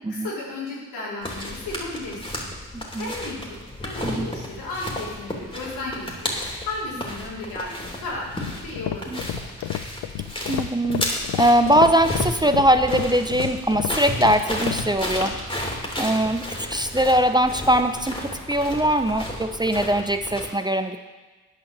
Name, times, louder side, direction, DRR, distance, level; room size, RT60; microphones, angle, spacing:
voice 1, 0.0-2.5 3.0-6.4 6.6-9.4, left 2 dB, 85° left, -6 dB, 3.5 m, -34 dB
sound 1, 1.2-20.5, left 1 dB, 15° left, 2.8 m, -33 dB
voice 2, 2.7-3.1 4.0-4.3 9.1-9.2 10.5-11.0 11.4-15.4 16.0-21.0, right 1 dB, 10° right, 7 dB, 0.7 m, -21 dB
sound 2, 8.3-14.9, left 14 dB, 65° left, 0.5 m, -30 dB
9.6 x 5.4 x 6.7 m, 1.3 s
supercardioid pair, 50°, 38 cm